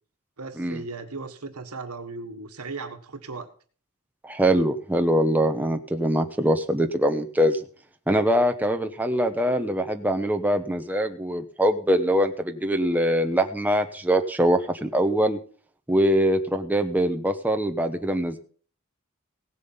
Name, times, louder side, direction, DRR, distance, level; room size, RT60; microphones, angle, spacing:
voice 1, 0.4-3.5, right 3 dB, 75° right, 7 dB, 1.6 m, -37 dB
voice 2, 4.2-7.6 8.1-15.4 15.9-18.4, equal, 10° right, 5 dB, 0.9 m, -23 dB
17.0 x 7.3 x 5.6 m, 0.42 s
head